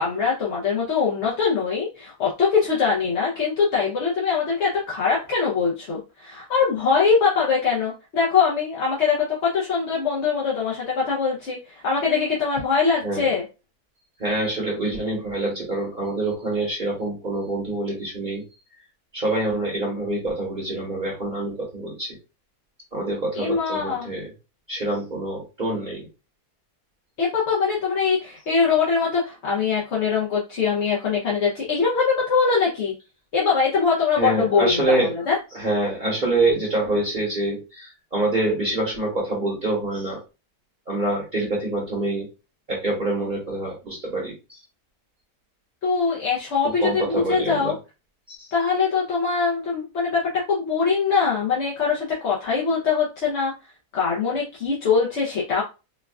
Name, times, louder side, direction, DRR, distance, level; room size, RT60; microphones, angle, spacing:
voice 1, 0.0-13.4 23.3-24.1 27.2-32.9 33.3-35.3 45.8-47.7 48.5-53.5 53.9-55.6, left 5 dB, 55° left, -5 dB, 1.0 m, -22 dB
voice 2, 14.2-18.4 19.1-22.2 22.9-24.3 24.7-26.0 34.2-35.1 35.5-40.2 40.9-42.3 42.7-44.6 46.6-47.7 48.3-48.5, right 2 dB, 35° right, -3 dB, 1.0 m, -26 dB
4.5 x 2.3 x 2.3 m, 0.29 s
omnidirectional pair, 1.6 m